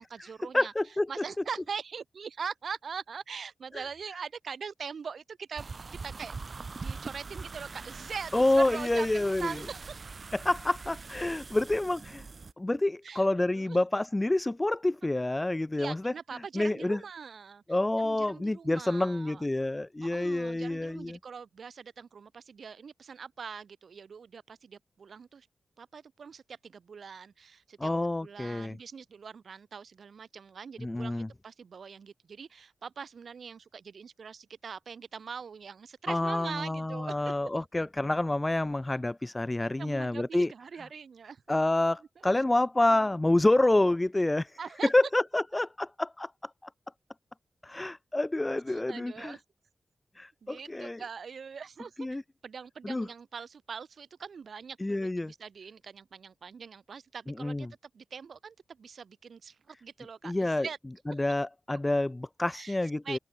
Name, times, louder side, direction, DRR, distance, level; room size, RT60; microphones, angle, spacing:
voice 1, 0.0-0.7 1.1-5.7 6.0-6.3 6.7-9.8 13.0-13.8 15.0-15.1 15.8-17.6 18.0-19.4 20.0-25.5 25.8-27.9 28.2-37.4 39.8-41.6 42.2-42.3 42.9-43.1 44.6-44.9 48.7-49.4 50.4-57.7 57.9-60.8 61.1-61.2 62.5-62.8 63.0-63.2, right 6 dB, 65° right, 1.8 m, -42 dB
voice 2, 0.5-1.1 3.7-3.8 8.3-9.5 10.3-12.2 12.6-16.1 16.5-17.0 17.7-21.2 27.8-28.8 30.8-31.3 36.1-40.5 41.5-46.3 47.6-49.4 50.2-51.0 52.0-52.2 52.8-53.1 54.8-55.3 57.4-57.7 60.2-60.7 61.2-63.2, left 2 dB, 15° left, 0.9 m, -28 dB
sound 1, 5.6-12.5, right 4 dB, 40° right, 0.5 m, -43 dB
wide cardioid pair, 175°, 0 cm